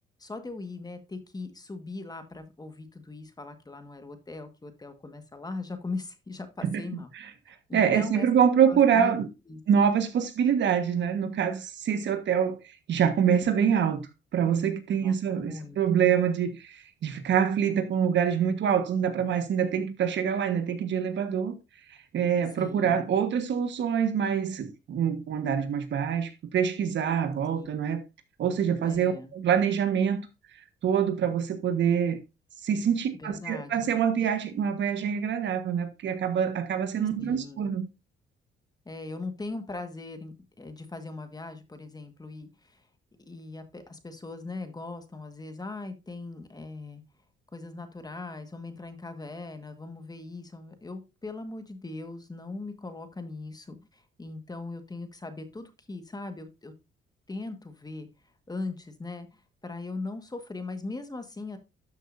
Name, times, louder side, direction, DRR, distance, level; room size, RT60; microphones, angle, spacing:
voice 1, 0.2-7.1 7.5-8.3 8.7-9.2 9.5-9.6 13.3-13.5 15.0-16.1 22.6-23.0 27.6-27.8 28.8-29.3 33.1-33.9 37.2-37.7 38.8-42.8 43.3-47.0 47.5-56.7 57.3-58.1 58.5-61.6, left 3 dB, 20° left, 1.5 m, -39 dB
voice 2, 7.7-9.3 9.7-21.5 21.9-28.0 28.4-30.3 30.8-32.2 32.6-37.9, right 8 dB, 65° right, 1.4 m, -25 dB
12.5 x 6.5 x 2.6 m
cardioid pair, 90°, 20 cm